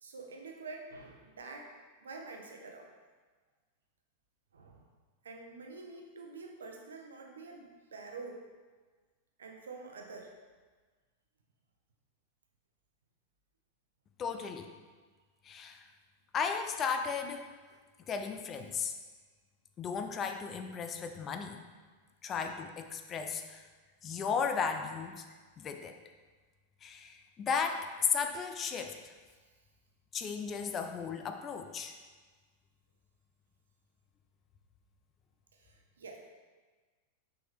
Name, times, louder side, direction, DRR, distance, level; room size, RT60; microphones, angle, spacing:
voice 1, 0.0-1.7 2.0-2.9 4.5-4.9 5.2-8.4 9.4-10.3 35.5-36.2, right 3 dB, 70° right, 2 dB, 0.8 m, -47 dB
voice 2, 14.2-14.7 15.5-15.8 16.3-17.5 18.1-18.9 19.8-21.6 22.2-23.6 24.0-25.2 25.6-25.9 26.8-29.0 30.1-31.9, left 6 dB, 25° left, 6 dB, 0.5 m, -35 dB
6.2 x 4.8 x 3.4 m, 1.4 s
figure-of-eight pair, 90°, 0 cm